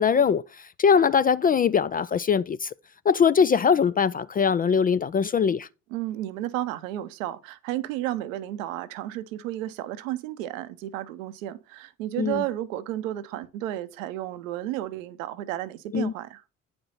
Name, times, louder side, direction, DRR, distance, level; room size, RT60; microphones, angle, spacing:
voice 1, 0.0-2.7 3.1-5.7 12.2-12.4 15.9-16.1, left 6 dB, 25° left, 0.3 m, -22 dB
voice 2, 5.9-16.4, right 14 dB, 70° right, 0.8 m, -32 dB
9.4 x 5.2 x 4.2 m
figure-of-eight pair, 40°, 41 cm